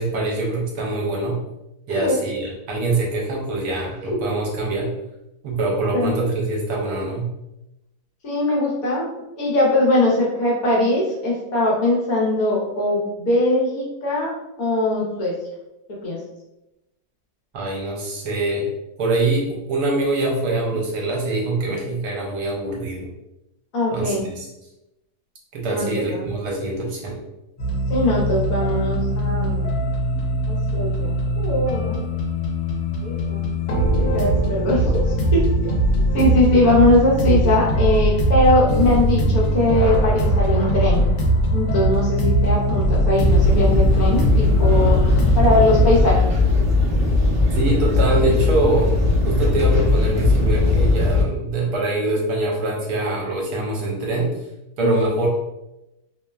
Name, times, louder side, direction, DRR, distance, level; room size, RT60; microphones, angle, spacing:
voice 1, 0.0-1.4 1.9-4.9 5.4-7.3 17.5-18.7 19.0-23.1 23.9-24.5 25.5-27.2 47.5-48.9 49.2-54.3 54.8-55.3, right 2 dB, 75° right, -2 dB, 1.1 m, -24 dB
voice 2, 1.9-2.2 4.0-4.2 5.9-6.1 8.2-9.1 9.4-14.3 14.6-15.4 15.9-16.2 23.7-24.2 25.7-26.2 27.9-29.7 30.5-32.0 33.0-33.4 34.0-35.8 36.1-41.0 41.5-46.2 54.8-55.0, left 1 dB, 65° left, -5 dB, 1.2 m, -21 dB
sound 1, 27.6-46.1, equal, 90° left, 1.2 m, -21 dB
sound 2, 43.2-51.2, left 3 dB, 15° right, 0.7 m, -19 dB
2.9 x 2.1 x 2.2 m, 0.92 s
omnidirectional pair, 1.7 m